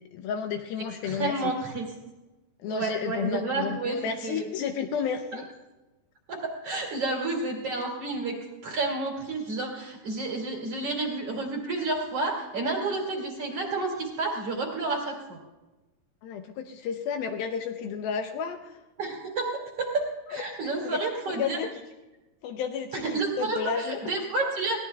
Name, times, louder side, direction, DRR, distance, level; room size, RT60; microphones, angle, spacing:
voice 1, 0.1-1.5 2.6-5.5 16.2-18.8 20.3-20.4 20.8-21.0 21.3-21.7 22.4-24.0, left 7 dB, 80° left, 6 dB, 2.4 m, -32 dB
voice 2, 1.0-1.9 2.7-4.0 4.2-4.4 5.3-5.4 6.3-8.4 8.6-15.4 19.0-19.5 19.8-21.6 22.9-24.8, right 3 dB, 45° right, 0 dB, 2.8 m, -30 dB
22.0 x 17.5 x 2.3 m, 1.1 s
omnidirectional pair, 4.6 m